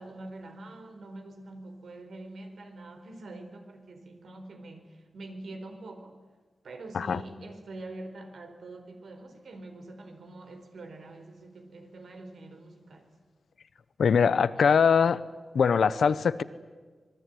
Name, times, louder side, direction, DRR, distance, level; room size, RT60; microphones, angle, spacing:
voice 1, 0.0-6.2 6.6-13.1, right 2 dB, 75° right, 6 dB, 4.3 m, -45 dB
voice 2, 14.0-15.2 15.5-16.4, left 6 dB, 85° left, 15 dB, 1.0 m, -22 dB
26.0 x 21.5 x 9.4 m, 1.4 s
wide cardioid pair, 170°, 0 cm